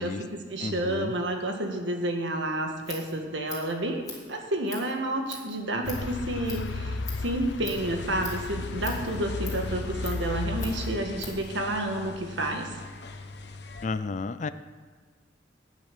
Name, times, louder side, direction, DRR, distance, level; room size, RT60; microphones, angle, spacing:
voice 1, 0.0-12.7, right 1 dB, 80° right, 3 dB, 1.6 m, -30 dB
voice 2, 0.6-1.1 13.8-14.5, left 4 dB, 40° left, 13 dB, 0.4 m, -32 dB
Scissors, 2.6-11.5, left 4 dB, 20° left, 2.6 m, -44 dB
sound 1, 5.8-11.0, left 3 dB, 85° left, 0.6 m, -34 dB
sound 2, 7.8-13.9, left 3 dB, 65° left, 1.0 m, -43 dB
10.5 x 9.0 x 6.8 m, 1.5 s
head